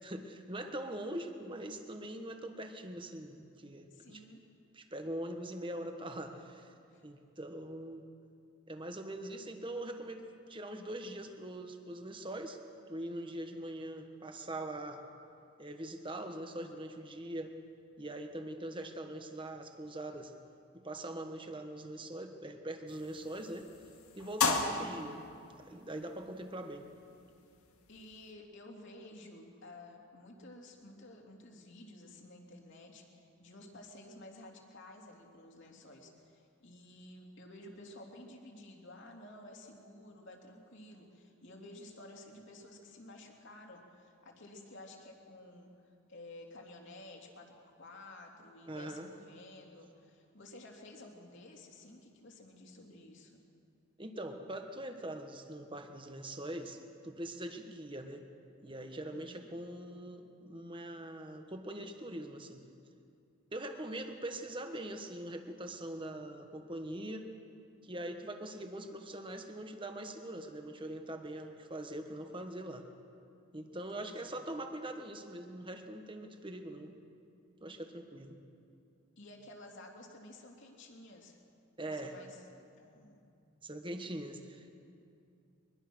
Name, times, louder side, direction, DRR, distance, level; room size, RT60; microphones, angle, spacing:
voice 1, 0.0-4.2 4.7-6.7 7.0-8.1 8.7-12.6 12.9-15.0 15.6-17.5 18.0-20.3 20.7-23.7 24.2-25.2 25.6-26.9 48.7-49.1 54.0-56.8 57.0-58.2 58.6-62.6 63.5-67.3 67.8-72.9 73.5-76.9 77.6-78.4 81.8-82.1 83.6-84.7, right 1 dB, 25° right, 5 dB, 1.4 m, -42 dB
voice 2, 3.9-4.4 6.9-7.0 27.9-53.4 59.1-59.6 73.7-74.4 79.2-81.4 81.8-82.4 82.8-83.2, left 1 dB, 55° left, 0 dB, 3.2 m, -53 dB
sound 1, 22.9-28.3, left 4 dB, 85° left, 2.2 m, -38 dB
23.5 x 21.5 x 6.3 m, 2.5 s
head